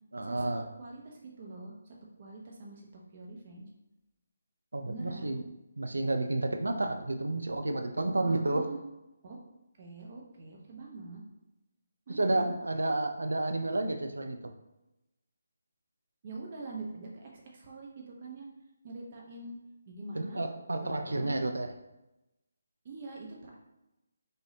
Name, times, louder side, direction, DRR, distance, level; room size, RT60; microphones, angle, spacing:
voice 1, 0.1-0.7 4.7-5.4 5.8-8.7 12.1-14.5 20.1-21.7, right 2 dB, 85° right, 6 dB, 0.5 m, -31 dB
voice 2, 0.8-2.9 3.1-3.7 4.8-5.3 8.2-8.8 9.2-9.4 9.8-11.2 12.1-12.5 16.2-18.5 18.8-19.6 19.9-20.4 20.8-21.5 22.8-23.6, right 3 dB, 40° right, -1 dB, 1.0 m, -44 dB
5.1 x 2.7 x 2.8 m, 0.96 s
figure-of-eight pair, 155°, 0 cm